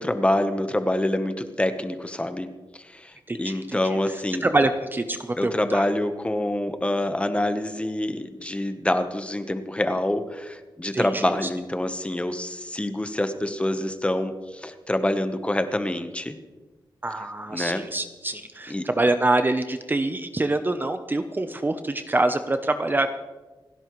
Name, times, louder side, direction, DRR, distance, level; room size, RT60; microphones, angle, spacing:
voice 1, 0.0-2.5 2.8-4.5 5.4-16.4 17.5-17.8 18.7-18.9, left 1 dB, 15° left, 8 dB, 1.0 m, -26 dB
voice 2, 3.3-3.8 4.4-5.8 10.9-11.2 17.0-23.1, right 2 dB, 25° right, 9 dB, 0.7 m, -25 dB
28.5 x 11.0 x 3.1 m, 1.2 s
wide cardioid pair, 110°, 8 cm